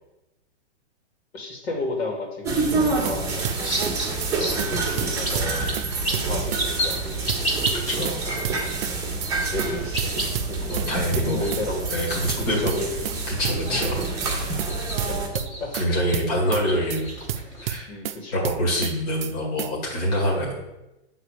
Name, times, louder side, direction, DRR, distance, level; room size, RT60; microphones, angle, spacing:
voice 1, 1.3-3.8 4.4-5.7 6.0-9.0 9.5-10.6 11.2-11.9 12.3-13.0 15.1-15.2 15.6-16.0 17.9-18.5 19.7-19.8 20.2-20.4, left 2 dB, 65° left, -1 dB, 2.7 m, -33 dB
sound 1, 2.4-15.3, right 3 dB, 10° right, 1.4 m, -28 dB
sound 2, 3.0-3.2 3.4-3.9 4.2-4.3 4.6-4.7 5.0-5.9 6.1-6.6 6.9-7.0 7.3-8.2 8.4-8.9 9.2-9.3 9.6-9.7 10.0-10.9 11.1-11.6 11.9-12.0 12.3-13.2 13.4-13.9 14.2-14.3 14.6-14.7 15.0-15.9 16.1-16.6 16.9-17.0 17.3-18.2 18.4-18.9 19.2-19.3 19.6-19.7, right 11 dB, 55° right, 0.5 m, -30 dB
sound 3, 3.3-17.6, right 1 dB, 10° left, 1.4 m, -34 dB
voice 2, 7.7-8.2 10.7-11.4 11.9-12.7 13.3-14.0 14.4-14.6 15.7-17.1 17.6-17.9 18.3-20.5, equal, 35° left, -4 dB, 2.1 m, -25 dB
8.1 x 3.9 x 6.6 m, 0.97 s
hypercardioid pair, 170°, 34 cm